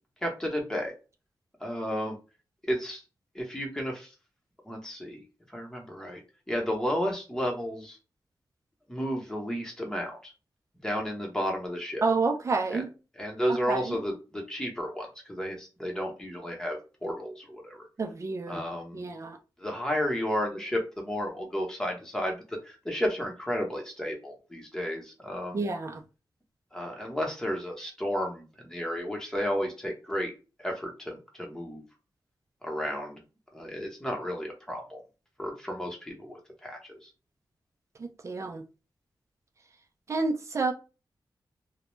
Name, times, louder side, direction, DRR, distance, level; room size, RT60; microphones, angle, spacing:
voice 1, 0.2-0.9 1.6-2.2 2.7-3.0 3.3-4.1 4.6-5.2 5.5-6.2 6.5-8.0 8.9-10.3 10.8-12.0 12.7-12.8 13.2-17.9 18.5-19.1 19.6-25.6 26.7-30.3 30.6-31.8 32.6-33.2 33.5-35.0 35.4-37.1, equal, 10° left, 0.8 m, -32 dB
voice 2, 12.0-12.9 13.7-14.0 18.0-18.6 18.9-19.4 25.5-26.0 38.0-38.7 40.1-40.7, right 3 dB, 40° right, 0.4 m, -29 dB
2.2 x 2.1 x 3.1 m
wide cardioid pair, 135°, 8 cm